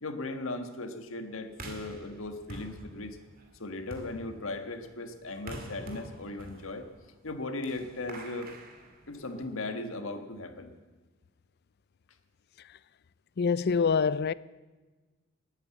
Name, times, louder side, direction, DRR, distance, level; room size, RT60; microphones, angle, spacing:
voice 1, 0.0-3.2 3.6-6.9 7.2-8.5 9.1-10.7, left 2 dB, 80° left, 1.6 m, -37 dB
sound 1, 1.5-9.6, right 1 dB, 45° right, 2.5 m, -47 dB
voice 2, 13.4-14.3, left 5 dB, 55° left, 0.4 m, -25 dB
20.0 x 9.1 x 7.2 m
head